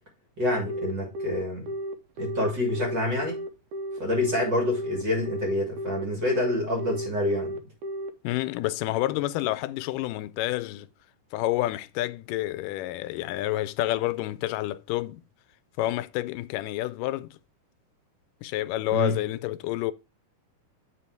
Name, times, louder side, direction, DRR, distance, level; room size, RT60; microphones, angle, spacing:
voice 1, 0.4-1.7 2.2-3.4 4.0-7.6 18.9-19.2, left 1 dB, 40° right, 1.9 m, -27 dB
Telephone, 0.7-8.1, right 1 dB, 75° right, 2.3 m, -33 dB
voice 2, 8.2-10.9 11.3-15.2 15.8-17.4 18.4-19.9, left 15 dB, 90° left, 2.1 m, -29 dB
9.1 x 4.1 x 4.5 m
omnidirectional pair, 3.7 m